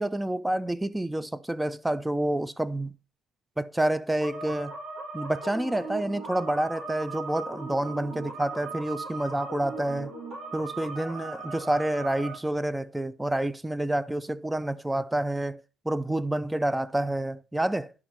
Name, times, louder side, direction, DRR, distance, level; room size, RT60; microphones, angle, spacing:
voice 1, 0.0-2.9 3.6-4.8 5.1-10.1 10.5-17.9, right 1 dB, 5° right, 0.4 m, -28 dB
sound 1, 4.2-12.4, right 3 dB, 65° right, 4.8 m, -38 dB
11.0 x 5.2 x 4.2 m
cardioid pair, 110°, 0 cm